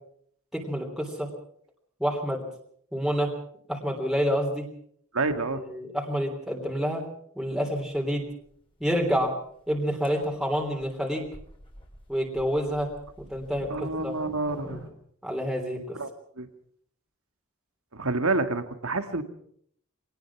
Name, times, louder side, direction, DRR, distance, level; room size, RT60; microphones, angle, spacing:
voice 1, 0.5-1.3 2.0-2.4 2.9-3.3 3.7-4.6 5.7-7.0 7.3-8.2 8.8-9.3 9.7-11.3 12.1-12.9 13.3-14.1 15.2-16.0, equal, ahead, -1 dB, 3.3 m, -28 dB
voice 2, 5.1-5.6 13.7-14.9 16.0-16.1 16.4-16.5 17.9-19.2, right 3 dB, 70° right, 8 dB, 1.9 m, -28 dB
sound 1, 7.5-7.6 7.9-8.0 8.2-14.9, equal, 25° left, 3.9 m, -48 dB
23.5 x 18.5 x 6.0 m, 0.65 s
head